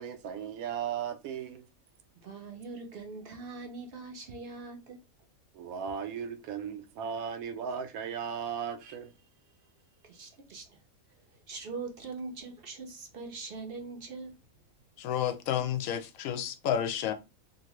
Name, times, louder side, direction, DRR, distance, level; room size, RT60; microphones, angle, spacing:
voice 1, 0.0-1.6 5.5-9.1, right 7 dB, 85° right, 1.0 m, -36 dB
voice 2, 2.2-5.0 10.0-10.8 11.5-14.3, right 4 dB, 55° right, 0.7 m, -42 dB
voice 3, 15.0-17.1, left 9 dB, 85° left, 1.0 m, -31 dB
2.9 x 2.6 x 2.9 m
omnidirectional pair, 1.4 m